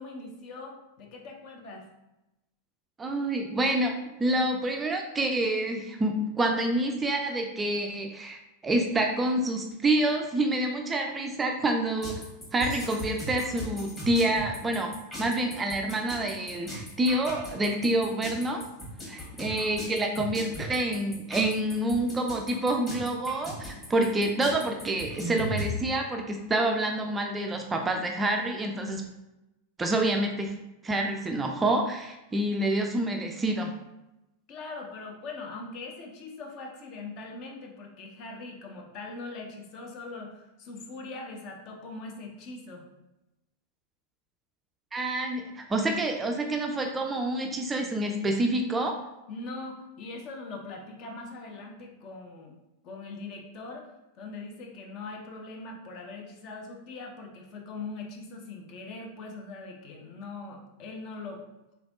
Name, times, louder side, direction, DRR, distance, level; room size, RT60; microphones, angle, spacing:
voice 1, 0.0-1.9 19.3-19.7 34.5-42.9 49.3-52.5 52.8-53.9 54.1-61.4, left 3 dB, 40° left, 1 dB, 0.6 m, -41 dB
voice 2, 3.0-12.2 12.5-18.6 19.0-29.0 29.8-30.5 30.8-33.7 44.9-48.9, right 1 dB, 15° right, 3 dB, 0.4 m, -27 dB
sound 1, 12.0-25.7, equal, 15° left, 1.4 m, -38 dB
3.4 x 3.3 x 2.5 m, 0.94 s
figure-of-eight pair, 90°, 0 cm